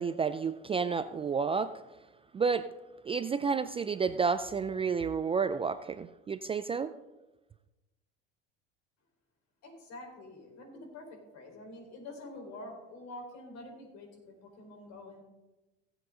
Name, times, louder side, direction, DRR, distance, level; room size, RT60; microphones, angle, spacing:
voice 1, 0.0-1.7 2.3-2.7 3.1-6.9, right 5 dB, 20° right, 12 dB, 0.4 m, -30 dB
voice 2, 9.6-15.2, left 2 dB, 60° left, 2 dB, 4.5 m, -47 dB
17.0 x 8.0 x 3.8 m, 1.0 s
supercardioid pair, 95°, 31 cm